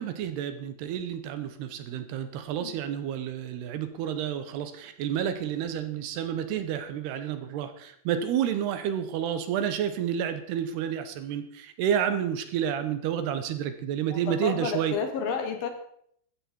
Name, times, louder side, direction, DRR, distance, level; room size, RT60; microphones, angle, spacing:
voice 1, 0.0-14.9, right 9 dB, 75° right, 10 dB, 3.0 m, -30 dB
voice 2, 14.1-15.7, left 5 dB, 65° left, 6 dB, 3.2 m, -31 dB
15.5 x 13.0 x 4.5 m, 0.66 s
omnidirectional pair, 5.0 m